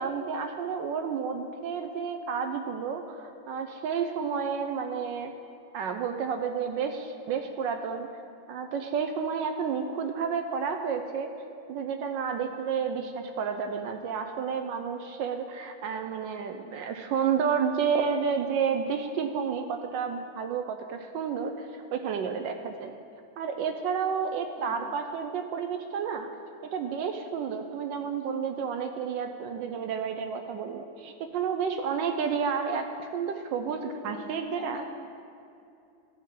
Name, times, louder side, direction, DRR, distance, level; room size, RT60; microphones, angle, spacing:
voice 1, 0.0-5.3 5.7-8.1 8.5-11.3 11.7-22.9 23.4-26.3 26.6-34.8, right 6 dB, 75° right, 6 dB, 1.2 m, -31 dB
voice 2, 24.6-24.9 32.2-32.5 33.6-34.8, left 2 dB, 50° left, -1 dB, 1.3 m, -44 dB
15.0 x 5.5 x 3.7 m, 2.6 s
omnidirectional pair, 2.2 m